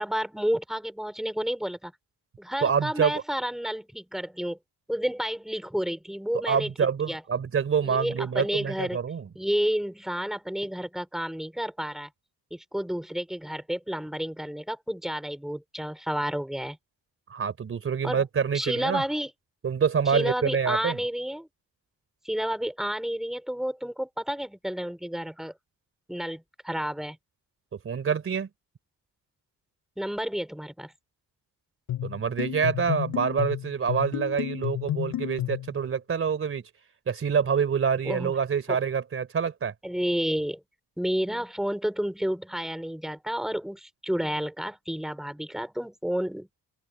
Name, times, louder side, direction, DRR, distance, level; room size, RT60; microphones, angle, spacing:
voice 1, 0.0-1.9 2.4-4.6 4.9-6.7 7.1-7.2 7.8-9.0 9.4-12.1 12.5-16.8 18.0-18.2 18.5-19.3 20.1-21.5 22.2-25.5 26.1-27.2 30.0-30.9 38.0-38.3 38.7-38.8 39.8-40.6 41.0-46.5, equal, ahead, 4.0 m, -30 dB
voice 2, 2.6-3.2 6.5-9.3 17.3-19.0 19.6-21.0 27.8-28.5 32.0-36.6 37.1-39.7, right 6 dB, 40° right, 3.6 m, -26 dB
sound 1, 31.9-35.7, left 12 dB, 85° left, 4.7 m, -31 dB
open air
cardioid pair, 155°, 34 cm